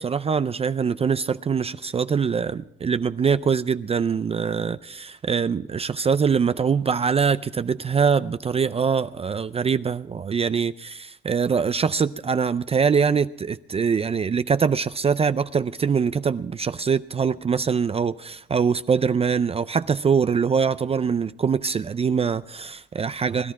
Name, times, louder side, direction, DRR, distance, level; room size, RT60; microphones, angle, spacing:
voice 1, 0.0-23.5, right 6 dB, 30° right, 0.4 m, -23 dB
21.0 x 11.5 x 4.7 m
cardioid pair, 90°, 20 cm